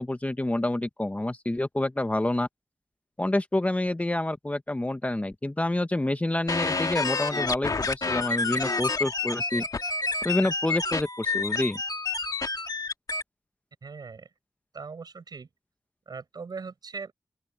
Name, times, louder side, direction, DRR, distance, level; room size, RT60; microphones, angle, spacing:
voice 1, 0.0-2.5 3.2-9.6 10.2-11.8, left 1 dB, 20° left, 1.2 m, -28 dB
sound 1, 6.5-13.2, left 3 dB, 65° left, 1.8 m, -29 dB
voice 2, 13.8-14.3 14.7-15.5 16.1-17.1, right 5 dB, 80° right, 7.6 m, -40 dB
open air
wide cardioid pair, 70°, 7 cm